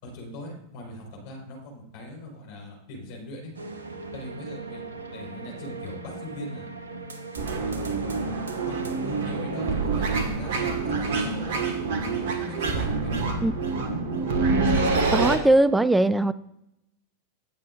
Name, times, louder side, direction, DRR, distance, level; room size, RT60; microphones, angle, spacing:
voice 1, 0.0-3.5 4.1-6.7 7.5-8.2 8.7-11.6 12.4-13.3, left 1 dB, 50° left, 0 dB, 4.6 m, -40 dB
sound 1, 3.5-9.8, right 3 dB, 70° right, 1.1 m, -39 dB
sound 2, 7.4-15.4, right 4 dB, 55° right, 1.6 m, -26 dB
voice 2, 15.1-16.3, right 2 dB, 5° right, 17 dB, 0.4 m, -20 dB
19.0 x 7.4 x 2.5 m, 0.81 s
figure-of-eight pair, 90°, 0 cm